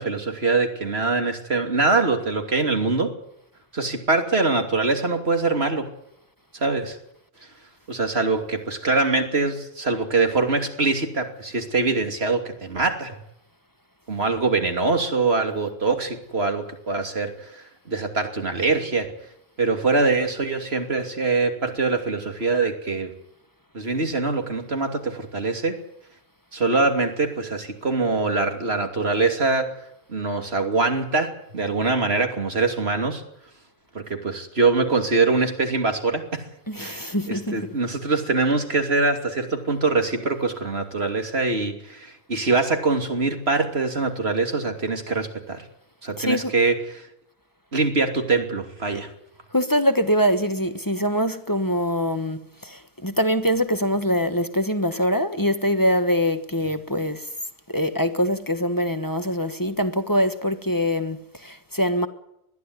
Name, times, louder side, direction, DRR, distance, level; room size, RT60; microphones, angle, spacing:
voice 1, 0.0-3.1 3.7-5.9 6.5-7.0 7.9-13.2 14.1-19.1 19.6-23.1 23.7-25.8 26.5-29.7 30.1-33.2 33.9-36.4 36.8-45.6 46.0-47.1 47.7-49.1, right 3 dB, 90° right, 3.1 m, -23 dB
voice 2, 36.7-37.7 38.4-38.5 46.2-46.5 48.9-49.0 49.5-57.3 57.7-62.1, equal, 20° left, 1.3 m, -23 dB
21.0 x 13.5 x 9.6 m
omnidirectional pair, 1.0 m